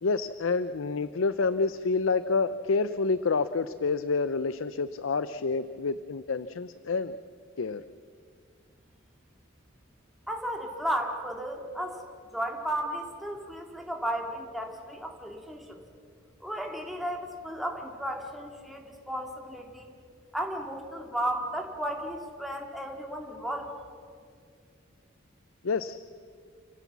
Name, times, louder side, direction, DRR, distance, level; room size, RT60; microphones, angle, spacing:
voice 1, 0.0-7.2 7.6-7.8 25.6-26.0, left 4 dB, 80° left, 14 dB, 0.6 m, -28 dB
voice 2, 10.3-12.0 12.3-15.8 16.4-19.9 20.3-23.7, right 1 dB, ahead, 1 dB, 2.1 m, -34 dB
29.0 x 16.5 x 7.3 m, 2.1 s
head